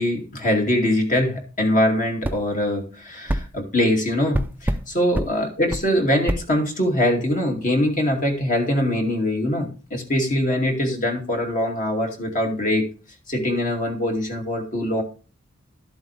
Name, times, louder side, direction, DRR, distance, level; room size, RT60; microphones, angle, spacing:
voice 1, 0.0-12.9 13.3-15.0, left 1 dB, 40° left, 2 dB, 2.5 m, -23 dB
sound 1, 2.2-2.4 3.3-3.5 4.3-4.8 5.1-5.3 5.7-5.9 6.3-6.4, right 1 dB, 10° right, 0.6 m, -24 dB
12.5 x 7.8 x 3.4 m, 0.35 s
head